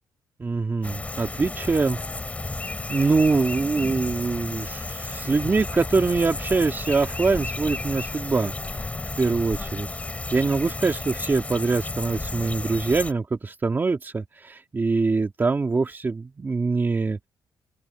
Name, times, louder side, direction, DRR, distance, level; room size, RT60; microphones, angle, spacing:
voice 1, 0.4-2.0 2.9-8.5 9.2-9.9 10.3-17.3, right 4 dB, 25° right, 2.4 m, -24 dB
sound 1, 0.8-13.1, left 2 dB, 15° left, 5.0 m, -32 dB
open air
cardioid pair, 110°, 8 cm